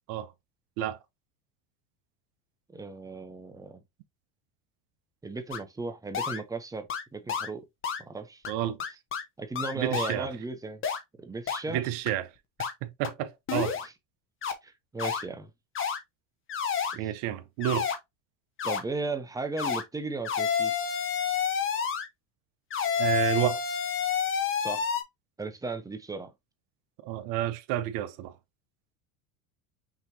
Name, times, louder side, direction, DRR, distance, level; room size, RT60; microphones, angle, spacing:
voice 1, 2.7-3.8 5.2-6.9 7.1-7.6 8.0-8.4 9.4-10.8 11.2-11.8 13.8-13.9 14.6-15.5 16.9-17.2 18.6-21.0 24.6-24.9 25.4-26.3, right 3 dB, 10° right, 0.5 m, -36 dB
sound 1, 5.5-5.6 6.1-6.4 6.9-7.0 7.3-7.5 7.8-8.0 8.4-8.5 8.8-9.2 9.6-10.2 10.8-11.0 11.5-11.6 12.1-12.2 12.6-12.7 13.0-13.1 13.5-13.9 14.4-14.5 15.0-15.2 15.7-16.0 16.5-17.0 17.6-18.0 18.6-18.8 19.6-19.8 20.2-22.1 22.7-25.0, left 7 dB, 25° left, 0.8 m, -29 dB
voice 2, 8.5-8.8 9.7-10.3 11.7-12.3 12.8-13.8 17.0-17.9 23.0-23.6 27.0-28.3, right 13 dB, 70° right, 0.9 m, -30 dB
5.8 x 3.0 x 2.7 m
supercardioid pair, 130°, 47 cm